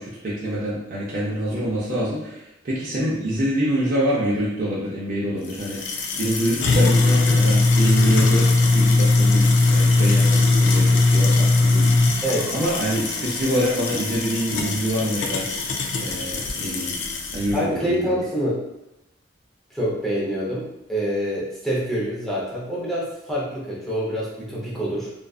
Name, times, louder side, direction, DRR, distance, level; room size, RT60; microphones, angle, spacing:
voice 1, 0.0-5.8 6.2-12.2 12.5-15.5 16.0-16.9 17.3-18.2, equal, 45° right, -7 dB, 0.5 m, -26 dB
sound 1, 5.5-17.5, left 3 dB, 65° left, 0.3 m, -20 dB
voice 2, 17.4-18.6 19.7-25.1, equal, ahead, -7 dB, 0.6 m, -26 dB
2.5 x 2.3 x 2.3 m, 0.89 s
head